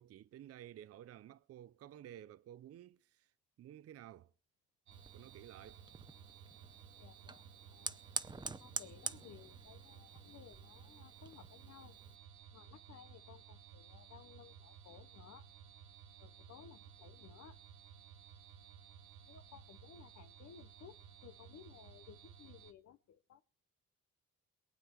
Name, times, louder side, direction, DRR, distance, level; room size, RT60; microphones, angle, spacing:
voice 1, 0.0-3.3 3.6-4.3 5.1-5.8, right 11 dB, 50° right, 0.6 m, -53 dB
Fire, 4.9-12.2, right 3 dB, 15° right, 0.7 m, -47 dB
sound 1, 4.9-22.7, right 8 dB, 70° right, 1.2 m, -57 dB
voice 2, 7.0-8.0 8.6-12.0 12.5-15.5 16.2-17.6 19.3-23.4, left 9 dB, 60° left, 0.9 m, -58 dB
22.5 x 8.9 x 4.5 m
cardioid pair, 90°, 30 cm